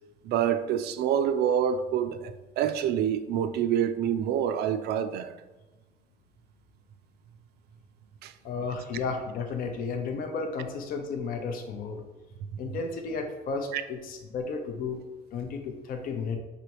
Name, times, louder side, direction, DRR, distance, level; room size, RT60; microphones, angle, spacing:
voice 1, 0.2-5.4 8.2-8.3 13.7-13.8, right 9 dB, 75° right, 0.4 m, -27 dB
voice 2, 8.4-12.0 12.6-15.0 15.3-16.4, left 4 dB, 55° left, 0.6 m, -33 dB
5.2 x 3.4 x 2.9 m
cardioid pair, 110°, 17 cm